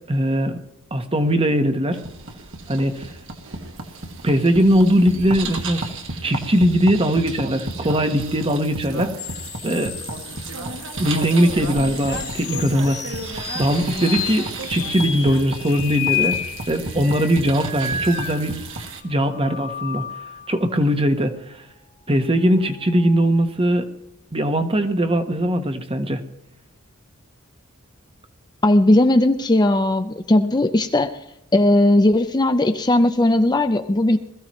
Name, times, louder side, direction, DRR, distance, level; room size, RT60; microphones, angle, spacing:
voice 1, 0.1-0.6 0.9-2.0 2.7-3.1 4.2-5.9 6.2-9.1 9.6-9.9 11.0-13.0 13.5-16.4 16.7-18.6 19.0-20.1 20.5-21.3 22.1-23.9 24.3-26.2, equal, 25° right, 8 dB, 1.2 m, -20 dB
sound 1, 1.9-19.0, right 2 dB, 60° right, 2.0 m, -32 dB
sound 2, 9.2-18.7 19.2-20.6 22.4-23.5, left 8 dB, 45° left, 2.1 m, -32 dB
voice 2, 28.6-31.1 31.5-34.2, left 1 dB, 20° left, 8 dB, 0.5 m, -17 dB
21.0 x 14.5 x 3.1 m, 0.83 s
head